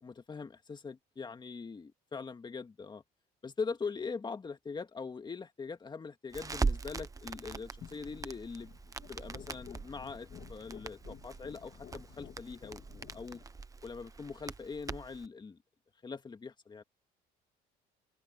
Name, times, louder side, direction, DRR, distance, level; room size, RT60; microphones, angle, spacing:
voice 1, 0.0-3.0 3.4-8.7 9.1-13.4 13.8-15.6 16.0-16.8, left 5 dB, 25° left, 2.0 m, -42 dB
Crackle, 6.3-15.3, right 4 dB, 20° right, 1.0 m, -41 dB
sound 1, 7.8-13.4, left 9 dB, 50° left, 1.9 m, -53 dB
cardioid pair, 110°, 17 cm